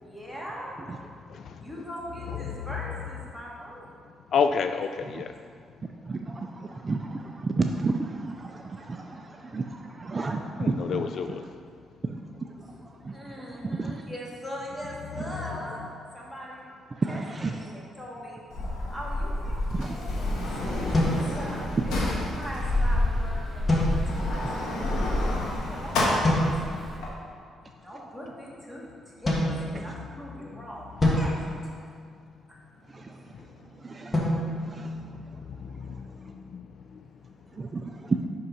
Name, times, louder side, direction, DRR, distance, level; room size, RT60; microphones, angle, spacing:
voice 1, 0.0-0.8 1.5-4.0 13.1-15.8 16.1-16.6 17.1-17.2 17.5-18.4 18.9-25.0 25.6-27.1 27.8-30.9 31.1-31.9, equal, 5° left, -5 dB, 2.0 m, -41 dB
voice 2, 4.3-5.3 10.6-11.4 35.6-35.9 36.2-36.6, left 6 dB, 60° left, 8 dB, 0.3 m, -29 dB
voice 3, 6.0-11.4 12.0-12.2 13.0-13.2 13.6-14.0 16.9-17.8 19.7-19.9 20.8-21.2 22.0-22.1 29.7-29.8 32.9-33.2 33.7-35.2 37.5-38.3, right 3 dB, 30° right, 3 dB, 0.4 m, -32 dB
Sliding door, 18.5-27.1, left 1 dB, 90° left, 1.5 m, -28 dB
sound 1, 20.4-27.0, right 1 dB, 15° right, 1.0 m, -41 dB
sound 2, 20.9-22.0 23.7-24.5 26.2-26.9 29.3-30.3 31.0-32.5 34.1-35.6, left 1 dB, 25° left, 1.6 m, -28 dB
5.7 x 5.4 x 5.4 m, 2.1 s
cardioid pair, 90°, 0 cm